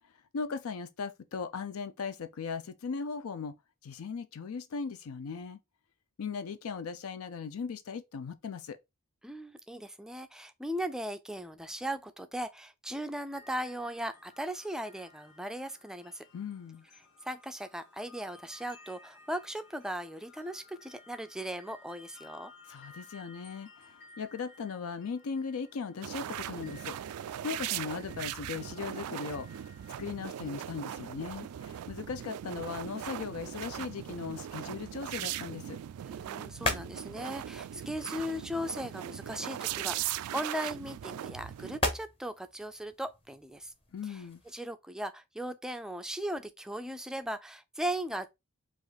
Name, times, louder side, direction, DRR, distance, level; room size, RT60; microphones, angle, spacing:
voice 1, 0.3-3.6 3.8-5.6 6.2-8.8 16.3-16.8 22.7-27.0 27.4-29.7 30.0-35.8 43.9-44.4, left 5 dB, 70° left, 0.4 m, -38 dB
voice 2, 9.2-16.2 17.2-22.5 36.0-43.7 44.0-44.2 44.5-48.3, equal, 5° right, 0.4 m, -38 dB
sound 1, 13.3-32.4, left 2 dB, 55° left, 1.3 m, -57 dB
sound 2, 26.0-41.8, right 11 dB, 85° right, 0.3 m, -39 dB
sound 3, 35.2-44.6, left 2 dB, 25° left, 0.9 m, -41 dB
5.0 x 2.5 x 3.9 m
head